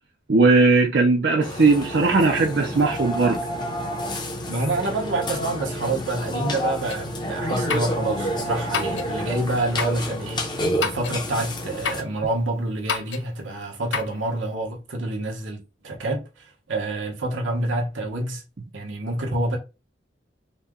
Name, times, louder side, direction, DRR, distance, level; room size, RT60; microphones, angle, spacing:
voice 1, 0.3-3.4, right 3 dB, 55° right, 0.6 m, -18 dB
Burping eructation, 1.4-12.0, equal, 25° left, 0.8 m, -29 dB
voice 2, 4.5-18.4 18.7-19.6, right 2 dB, 80° right, 1.1 m, -27 dB
sound 1, 6.9-7.0 7.7-8.0 8.7-9.1 9.8-10.0 10.8-11.2 11.8-12.1 12.9-13.3 13.9-14.2, left 6 dB, 70° left, 0.5 m, -28 dB
4.1 x 2.2 x 3.7 m
head